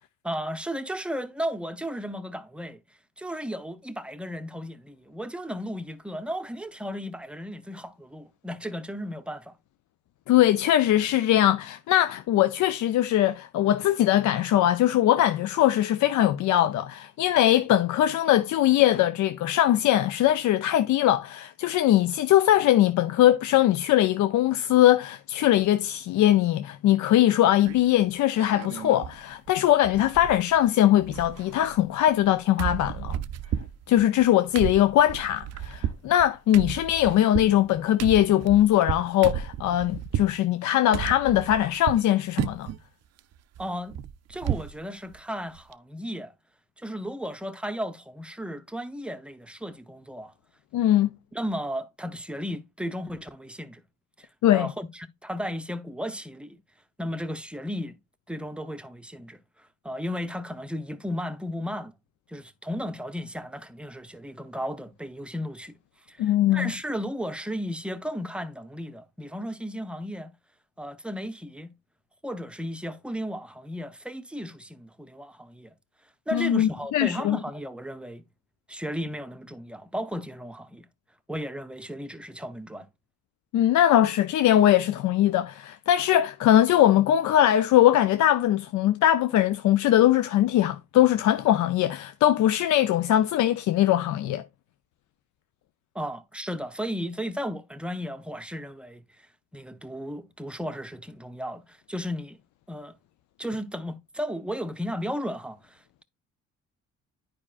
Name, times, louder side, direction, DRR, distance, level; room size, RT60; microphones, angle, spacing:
voice 1, 0.2-2.8 3.2-9.5 43.6-43.9 44.3-46.3 46.8-50.3 51.3-53.8 54.2-56.6 57.0-58.0 58.3-61.9 62.3-65.8 66.1-70.3 70.8-71.7 72.2-75.7 76.3-78.2 78.7-80.9 81.3-82.9 95.9-99.0 99.5-102.4 102.7-103.0 103.4-106.0, equal, 5° right, 0.6 m, -34 dB
voice 2, 10.3-33.2 33.9-42.7 50.7-51.1 54.4-54.7 66.2-66.7 76.3-77.4 83.5-94.4, left 12 dB, 70° left, 0.5 m, -21 dB
sound 1, 27.6-28.0 28.4-29.2 29.5-29.6 29.8-30.7 30.9-32.3 32.6-40.4 40.9-42.1 42.4-42.8 43.2-44.8 45.1-45.2 45.5-45.7, right 10 dB, 60° right, 0.5 m, -33 dB
9.7 x 4.9 x 2.4 m
cardioid pair, 90°, 30 cm